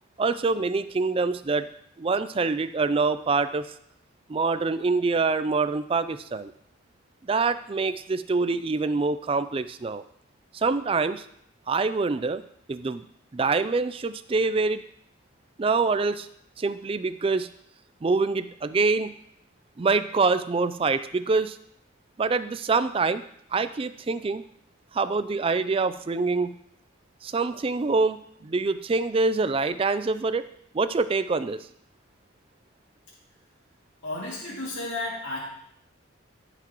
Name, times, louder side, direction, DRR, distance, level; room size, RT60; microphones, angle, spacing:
voice 1, 0.2-1.7 2.0-3.7 4.3-6.5 7.2-10.0 10.5-11.3 11.7-12.4 12.7-13.0 13.3-14.8 15.6-16.3 16.6-17.5 18.0-19.1 19.8-21.6 22.2-23.2 23.5-24.4 24.9-26.5 27.2-30.4 30.7-31.7, right 4 dB, 25° right, 12 dB, 0.3 m, -25 dB
voice 2, 34.0-35.4, left 2 dB, 65° left, -5 dB, 2.4 m, -32 dB
14.5 x 5.8 x 3.0 m, 0.71 s
head